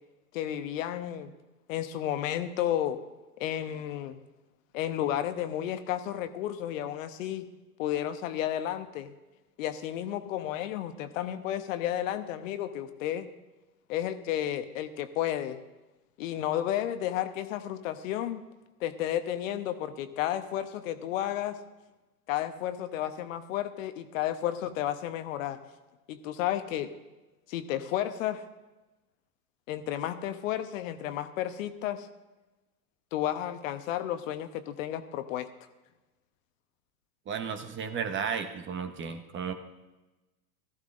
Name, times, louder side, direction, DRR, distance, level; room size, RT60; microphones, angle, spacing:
voice 1, 0.3-1.3 1.7-3.0 3.4-4.2 4.7-7.5 7.8-9.1 9.6-13.3 13.9-15.6 16.2-18.4 18.8-21.6 22.3-25.6 26.1-26.9 27.5-28.4 29.7-32.1 33.1-35.5, left 11 dB, 55° left, 10 dB, 1.0 m, -32 dB
voice 2, 37.3-39.5, right 6 dB, 25° right, 9 dB, 1.0 m, -33 dB
17.0 x 14.0 x 2.5 m, 1.1 s
hypercardioid pair, 90°, 47 cm